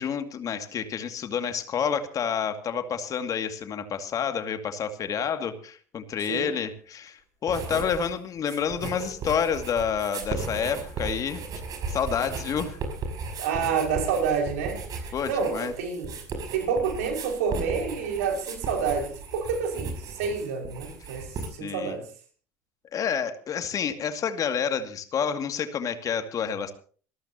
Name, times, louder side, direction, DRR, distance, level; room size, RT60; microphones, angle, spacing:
voice 1, 0.0-11.4 11.9-12.8 15.1-15.7 21.6-22.0 22.9-26.7, left 7 dB, 45° left, 8 dB, 2.3 m, -29 dB
sound 1, 7.5-8.1 8.4-21.5, right 4 dB, 50° right, 5.6 m, -36 dB
voice 2, 13.4-16.2 16.5-22.0, right 6 dB, 75° right, 3 dB, 5.5 m, -28 dB
26.5 x 13.5 x 2.9 m, 0.41 s
hypercardioid pair, 70°, 8 cm